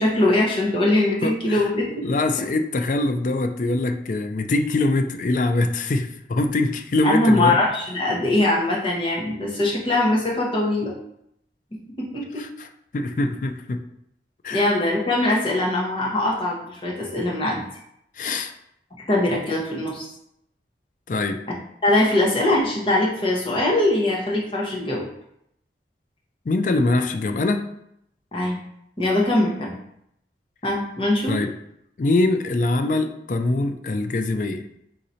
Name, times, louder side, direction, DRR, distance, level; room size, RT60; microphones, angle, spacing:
voice 1, 0.0-2.0 7.0-10.9 12.0-12.4 14.5-17.6 19.1-20.1 21.8-25.0 28.3-28.6 29.0-29.7 30.6-31.4, left 1 dB, 30° left, -4 dB, 0.9 m, -22 dB
voice 2, 1.2-1.6 2.0-7.6 12.4-12.7 12.9-13.8 14.4-14.6 18.2-18.5 21.1-21.4 26.5-27.7 31.3-31.5 32.0-34.7, left 2 dB, 45° left, 7 dB, 0.4 m, -23 dB
3.8 x 2.7 x 4.3 m, 0.75 s
head